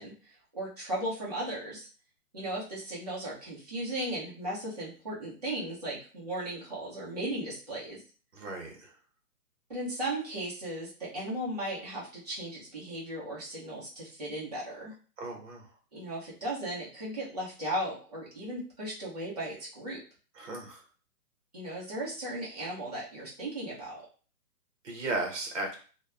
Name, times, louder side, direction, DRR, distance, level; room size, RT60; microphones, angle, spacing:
voice 1, 0.0-1.9 2.3-8.0 9.7-14.9 15.9-20.0 21.5-24.0, right 1 dB, 25° right, -7 dB, 0.6 m, -36 dB
voice 2, 8.3-8.9 15.2-15.7 20.4-20.8 24.8-25.7, right 2 dB, 50° right, 1 dB, 0.9 m, -35 dB
2.7 x 2.2 x 2.3 m, 0.38 s
hypercardioid pair, 170°, 46 cm